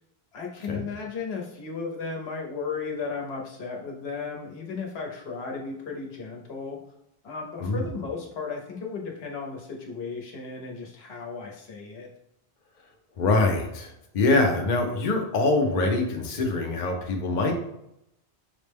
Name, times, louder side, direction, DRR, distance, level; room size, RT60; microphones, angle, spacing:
voice 1, 0.3-6.8 7.2-12.1, left 4 dB, 75° left, 0 dB, 1.1 m, -35 dB
voice 2, 13.2-17.5, left 2 dB, 50° left, 2 dB, 0.7 m, -24 dB
5.8 x 2.1 x 3.4 m, 0.82 s
omnidirectional pair, 1.1 m